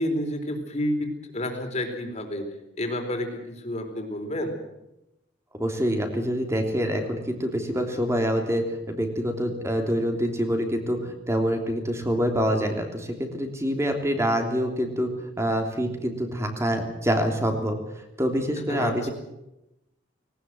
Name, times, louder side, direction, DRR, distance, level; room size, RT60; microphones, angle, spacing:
voice 1, 0.0-2.5 2.8-4.6 18.7-19.1, left 1 dB, 35° left, 5 dB, 4.0 m, -30 dB
voice 2, 5.6-17.8 18.2-19.1, equal, 15° right, 4 dB, 3.2 m, -26 dB
19.5 x 19.0 x 7.8 m, 0.90 s
head